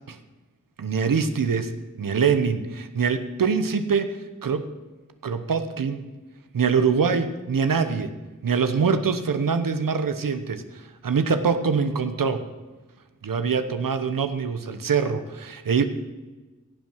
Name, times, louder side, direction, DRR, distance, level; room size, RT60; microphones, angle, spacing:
voice 1, 0.8-1.7 2.0-4.7 5.2-6.0 6.5-8.1 8.4-10.6 11.0-12.4 13.2-15.8, right 5 dB, 85° right, 10 dB, 1.0 m, -24 dB
16.5 x 7.5 x 6.3 m, 1.2 s
wide cardioid pair, 70°, 33 cm